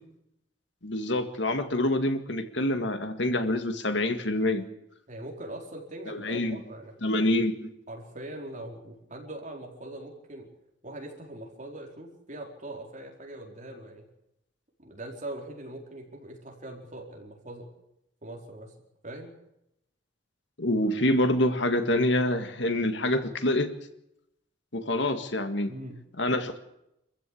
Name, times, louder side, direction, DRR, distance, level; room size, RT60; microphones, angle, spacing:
voice 1, 0.8-4.7 6.1-6.6 7.0-7.7 20.6-23.7 24.7-25.7 26.2-26.6, left 1 dB, 70° left, 8 dB, 2.0 m, -26 dB
voice 2, 5.1-6.9 7.2-7.3 7.9-10.5 10.8-14.1 14.8-17.7 18.2-18.7 19.0-19.3 25.7-26.0, right 1 dB, 40° right, 0 dB, 4.6 m, -41 dB
26.0 x 15.0 x 8.6 m, 0.83 s
head